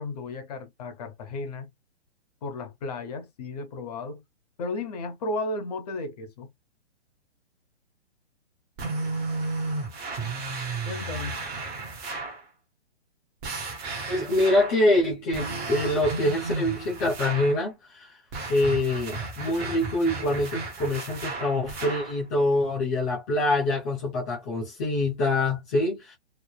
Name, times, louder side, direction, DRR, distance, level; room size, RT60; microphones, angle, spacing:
voice 1, 0.0-1.7 2.4-4.2 4.6-6.5 10.9-11.4, left 2 dB, 35° left, 0.8 m, -34 dB
sound 1, 8.8-12.4 13.4-14.8 15.3-17.6 18.3-22.2, right 3 dB, 15° right, 0.8 m, -33 dB
voice 2, 14.1-18.1 18.5-26.1, left 1 dB, 10° left, 0.4 m, -25 dB
3.2 x 2.0 x 2.2 m
hypercardioid pair, 155°, 33 cm